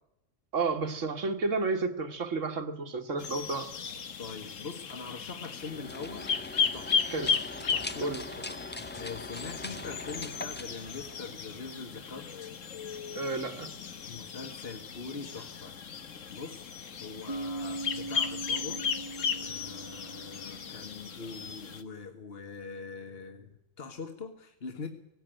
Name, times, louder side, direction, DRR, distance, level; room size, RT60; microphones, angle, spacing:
voice 1, 0.5-3.7 7.1-7.4 8.0-8.2 13.2-13.7, right 3 dB, 65° right, 1.9 m, -31 dB
sound 1, 3.2-21.8, left 6 dB, 70° left, 1.5 m, -36 dB
voice 2, 4.2-6.3 6.7-7.1 7.7-8.2 8.7-12.3 14.0-16.0 16.3-18.8 19.4-24.9, left 4 dB, 45° left, 1.8 m, -43 dB
sound 2, 5.5-11.6, left 2 dB, 15° left, 0.4 m, -42 dB
Bass guitar, 17.3-21.1, right 2 dB, 20° right, 1.1 m, -40 dB
19.0 x 16.0 x 9.1 m
omnidirectional pair, 1.4 m